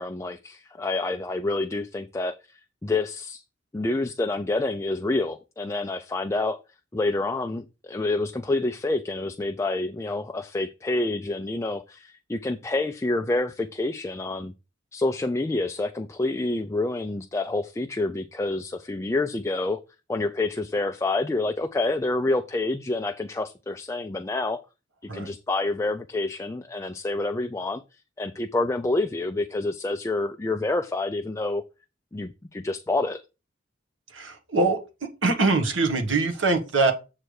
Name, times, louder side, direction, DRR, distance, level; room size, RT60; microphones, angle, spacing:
voice 1, 0.0-2.3 2.8-3.4 3.7-6.6 6.9-14.5 14.9-19.8 20.1-24.6 25.1-27.8 28.2-31.6 32.1-33.2, left 2 dB, 15° left, 0.4 m, -28 dB
voice 2, 34.1-34.8 35.2-36.9, right 3 dB, 75° right, 1.3 m, -23 dB
7.8 x 3.3 x 6.3 m
head